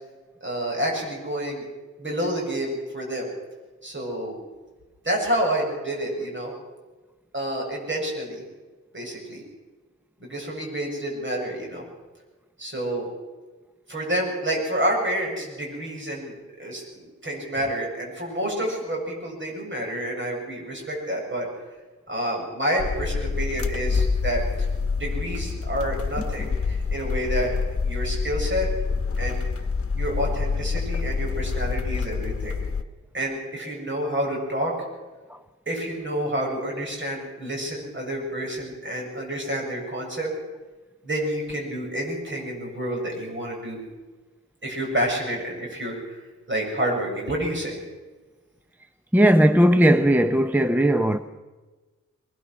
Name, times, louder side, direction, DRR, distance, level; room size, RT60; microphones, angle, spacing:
voice 1, 0.4-1.7 2.0-3.3 3.8-4.3 5.0-6.5 7.3-8.4 8.9-9.4 10.2-11.8 12.6-13.1 13.9-21.5 22.1-24.7 25.0-27.5 27.8-28.7 29.2-29.4 30.0-32.6 33.1-34.7 35.7-40.3 41.0-43.8 44.6-46.1 46.5-47.8, right 1 dB, 40° right, 7.5 m, -29 dB
sound 1, 22.8-32.8, left 5 dB, 50° left, 1.2 m, -27 dB
voice 2, 49.1-51.2, right 1 dB, 5° right, 0.7 m, -18 dB
22.5 x 21.0 x 6.4 m
wide cardioid pair, 125°, 29 cm